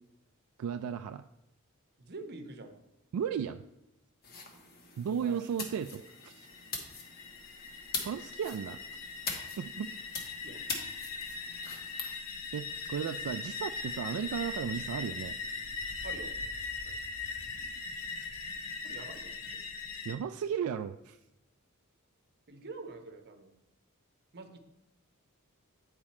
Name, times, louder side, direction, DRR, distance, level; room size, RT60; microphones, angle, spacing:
voice 1, 0.6-1.3 3.1-3.6 5.0-6.5 8.0-8.8 9.6-9.9 12.5-15.4 20.0-21.2, right 7 dB, 75° right, 9 dB, 0.3 m, -35 dB
voice 2, 2.0-2.8 5.2-5.4 10.4-10.6 16.0-16.3 16.8-17.0 18.8-19.6 22.5-23.5 24.3-24.6, right 3 dB, 50° right, 7 dB, 0.9 m, -46 dB
sound 1, 4.2-12.1, left 4 dB, 45° left, 1.1 m, -42 dB
sound 2, 5.8-20.1, left 4 dB, 70° left, 0.8 m, -40 dB
8.8 x 4.8 x 4.2 m, 0.94 s
head